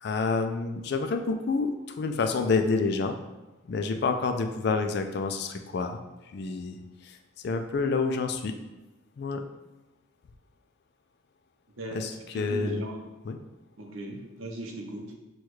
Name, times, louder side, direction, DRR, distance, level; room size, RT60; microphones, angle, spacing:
voice 1, 0.0-3.2 3.6-6.0 6.3-7.2 7.4-8.6 9.2-9.4 11.9-12.8 13.3-13.4, left 4 dB, 55° left, 6 dB, 0.3 m, -28 dB
voice 2, 12.3-13.1 13.8-15.1, right 1 dB, 80° right, 1 dB, 0.7 m, -37 dB
6.0 x 2.3 x 3.1 m, 1.1 s
head